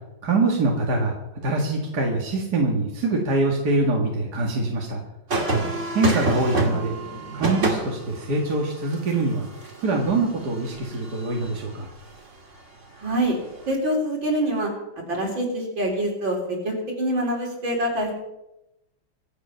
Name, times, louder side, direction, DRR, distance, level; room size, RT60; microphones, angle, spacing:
voice 1, 0.2-1.1 1.4-5.0 5.9-7.0 7.3-9.5 9.8-11.9, right 2 dB, 55° right, 0 dB, 2.6 m, -24 dB
sound 1, 5.3-11.7 13.4-13.7, right 2 dB, 35° right, 2.5 m, -28 dB
voice 2, 13.0-13.4 13.7-14.7 15.1-18.1, right 1 dB, 75° right, 0 dB, 4.7 m, -25 dB
25.0 x 8.5 x 5.8 m, 0.91 s
omnidirectional pair, 2.1 m